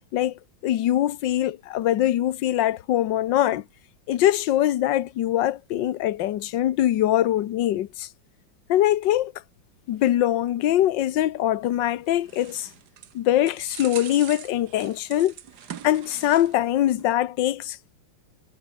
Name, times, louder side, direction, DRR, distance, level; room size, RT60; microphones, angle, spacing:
voice 1, 0.1-3.6 4.1-8.1 8.7-9.3 9.9-12.7 13.1-15.3 15.8-18.0, left 13 dB, 65° left, 1.6 m, -23 dB
sound 1, 11.8-16.7 17.0-17.1, right 9 dB, 60° right, 1.6 m, -42 dB
omnidirectional pair, 2.2 m